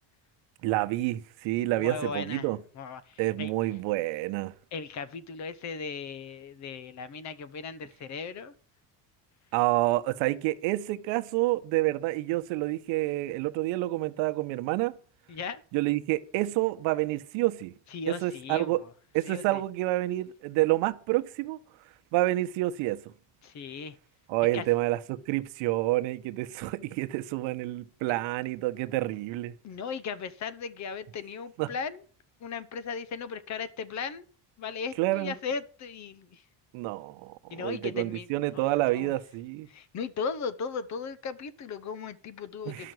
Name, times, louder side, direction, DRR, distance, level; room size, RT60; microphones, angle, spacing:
voice 1, 0.6-2.6 3.2-4.5 9.5-15.0 15.7-17.7 18.1-18.8 19.1-21.6 22.1-23.1 24.3-29.6 31.6-31.7 35.0-35.3 36.7-39.7 42.6-42.9, right 18 dB, 85° right, 1.1 m, -28 dB
voice 2, 1.8-2.5 2.7-3.5 4.7-8.5 15.3-15.6 17.9-18.9 19.2-19.6 23.4-24.0 24.5-24.6 29.6-32.0 32.4-34.3 34.6-36.4 37.5-38.3 38.5-39.1 39.7-42.9, left 5 dB, 40° left, 0.9 m, -37 dB
12.0 x 5.9 x 7.8 m
cardioid pair, 155°, 44 cm